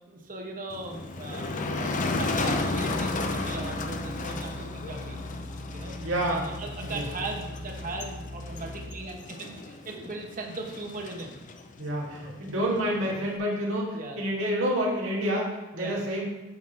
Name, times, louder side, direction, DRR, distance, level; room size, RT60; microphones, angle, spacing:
voice 1, 0.1-5.2 5.7-5.9 6.2-11.3 13.9-14.2 15.7-16.0, right 2 dB, 40° right, 2 dB, 1.1 m, -38 dB
Motor vehicle (road), 0.7-13.4, left 2 dB, 40° left, 0.6 m, -34 dB
sound 1, 2.1-8.9, left 1 dB, 60° right, 0.7 m, -41 dB
voice 2, 6.0-6.4 6.9-7.0 11.8-16.2, equal, 75° right, -4 dB, 2.5 m, -28 dB
9.5 x 6.0 x 3.4 m, 1.1 s
head